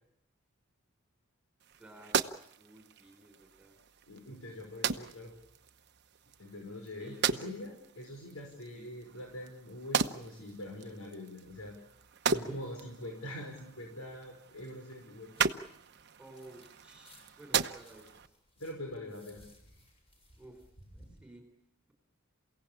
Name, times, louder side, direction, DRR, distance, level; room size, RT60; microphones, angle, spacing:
sound 1, 1.6-18.3, right 6 dB, 50° right, 1.0 m, -37 dB
voice 1, 1.7-3.8 7.0-7.5 8.7-8.9 12.2-12.6 16.2-18.4 20.4-20.6 20.9-21.5, right 1 dB, 5° right, 5 dB, 3.9 m, -54 dB
voice 2, 4.1-5.3 6.4-11.8 12.2-15.3 18.6-19.4, left 1 dB, 85° left, 1 dB, 5.3 m, -44 dB
sound 2, 15.3-16.7 17.0-21.2, equal, 30° left, 7.0 m, -60 dB
28.5 x 17.0 x 8.6 m, 0.78 s
head